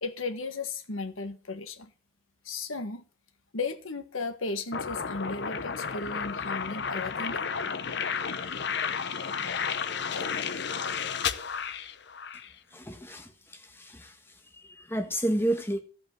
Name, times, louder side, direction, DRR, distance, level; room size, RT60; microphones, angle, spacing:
voice 1, 0.0-1.9 2.4-3.0 3.5-7.5, left 3 dB, 80° left, 1.4 m, -35 dB
sound 1, 4.7-12.5, left 6 dB, 55° left, 0.7 m, -32 dB
voice 2, 12.7-14.1 14.6-15.8, right 1 dB, 10° left, 1.4 m, -31 dB
15.0 x 5.5 x 7.5 m
head